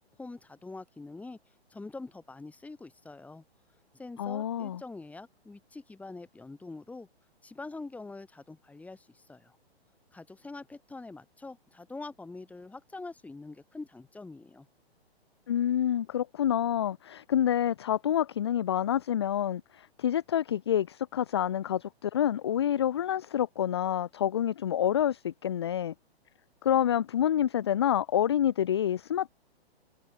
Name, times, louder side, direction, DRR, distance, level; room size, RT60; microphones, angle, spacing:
voice 1, 0.2-1.4 1.7-3.4 3.9-7.1 7.4-9.6 10.1-14.7, left 3 dB, 5° left, 3.4 m, -44 dB
voice 2, 4.2-4.8 15.5-25.9 26.6-29.3, left 10 dB, 25° left, 0.4 m, -28 dB
figure-of-eight pair, 125°, 32 cm